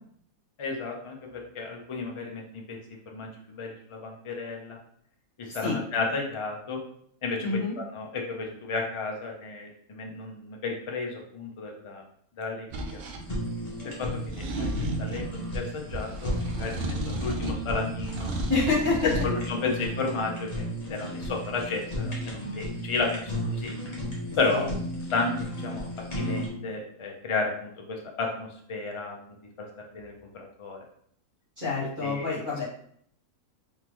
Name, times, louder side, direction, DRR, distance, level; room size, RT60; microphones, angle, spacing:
voice 1, 0.6-1.2 1.5-2.8 3.1-4.8 5.4-6.8 7.2-7.5 7.9-12.0 12.4-13.0 13.8-18.3 19.2-23.7 24.4-24.6 25.1-25.3 25.6-25.9 26.1-29.2 29.6-29.7 29.9-30.8 32.0-32.3, left 3 dB, 45° left, 1 dB, 0.3 m, -32 dB
voice 2, 7.4-7.8 18.5-19.1 24.5-24.6 31.6-32.6, left 3 dB, 35° right, -9 dB, 1.8 m, -27 dB
sound 1, 12.7-13.2 14.2-15.3 15.9-17.7 18.0-19.3, right 1 dB, 55° right, 0.7 m, -33 dB
Fire, 13.2-26.5, equal, 30° left, 1.1 m, -34 dB
3.8 x 3.7 x 3.0 m, 0.65 s
omnidirectional pair, 1.6 m